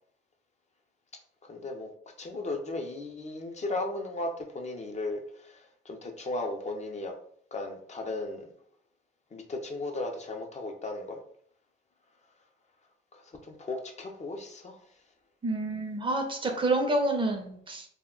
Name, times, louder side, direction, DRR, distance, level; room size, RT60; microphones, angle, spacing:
voice 1, 1.4-1.9 2.2-7.1 7.5-8.5 9.3-11.2 13.1-14.8, left 2 dB, 35° left, 3 dB, 0.5 m, -36 dB
voice 2, 15.4-17.9, right 2 dB, 25° right, 3 dB, 0.5 m, -28 dB
2.2 x 2.1 x 3.6 m, 0.63 s
cardioid pair, 90°, 20 cm